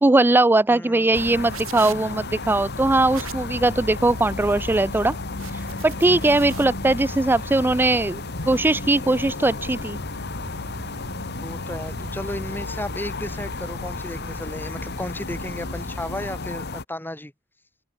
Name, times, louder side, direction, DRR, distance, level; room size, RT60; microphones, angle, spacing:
voice 1, 0.0-5.1 5.8-10.0, right 2 dB, 10° right, 0.3 m, -20 dB
voice 2, 0.7-1.2 11.3-17.3, left 1 dB, 10° left, 2.7 m, -34 dB
sound 1, 1.1-16.8, left 3 dB, 55° left, 1.7 m, -33 dB
sound 2, 1.1-6.6, right 7 dB, 80° right, 2.1 m, -41 dB
Insect, 3.3-16.3, equal, 60° right, 5.7 m, -39 dB
open air
head